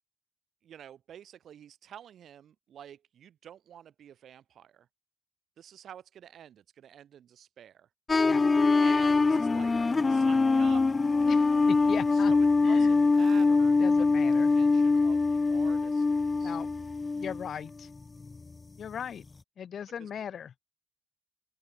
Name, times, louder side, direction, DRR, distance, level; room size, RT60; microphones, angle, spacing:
voice 1, 0.6-4.9 5.6-7.9 8.8-9.7 10.1-10.9 12.1-16.6 20.0-20.1, right 9 dB, 80° right, 7.9 m, -49 dB
sound 1, 8.1-17.5 18.0-18.4, left 3 dB, 40° left, 0.9 m, -23 dB
voice 2, 8.2-8.5 11.3-12.3 12.6-12.9 13.4-13.5 13.8-14.5 16.4-16.7 17.1-17.9 18.8-19.2 19.6-20.5, left 8 dB, 75° left, 3.7 m, -38 dB
open air
supercardioid pair, 50°, 0 cm